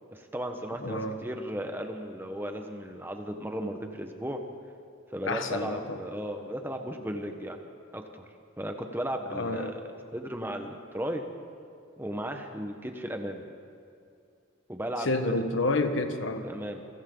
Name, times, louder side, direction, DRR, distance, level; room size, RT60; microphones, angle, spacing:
voice 1, 0.1-4.4 5.1-7.6 7.9-8.3 8.6-9.8 10.1-11.2 12.0-13.4 14.7-15.4 16.4-16.9, equal, 10° right, 4 dB, 1.3 m, -35 dB
voice 2, 0.8-1.2 5.2-6.0 9.3-9.7 15.0-16.5, left 2 dB, 75° left, 7 dB, 1.5 m, -29 dB
29.0 x 24.0 x 4.0 m, 2.5 s
head